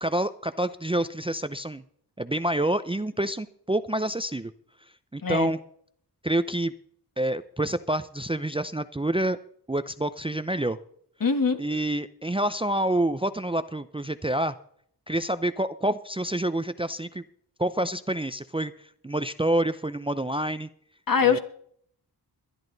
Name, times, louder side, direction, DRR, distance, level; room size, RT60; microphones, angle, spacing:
voice 1, 0.0-1.8 2.2-4.5 5.1-5.6 6.2-6.7 7.2-9.4 9.7-10.8 11.6-14.6 15.1-17.2 17.6-20.7 21.2-21.4, right 1 dB, 15° right, 12 dB, 0.5 m, -27 dB
voice 2, 11.2-11.6 21.1-21.4, left 5 dB, 50° left, 8 dB, 1.6 m, -23 dB
22.0 x 11.0 x 4.0 m, 0.64 s
wide cardioid pair, 80°, 42 cm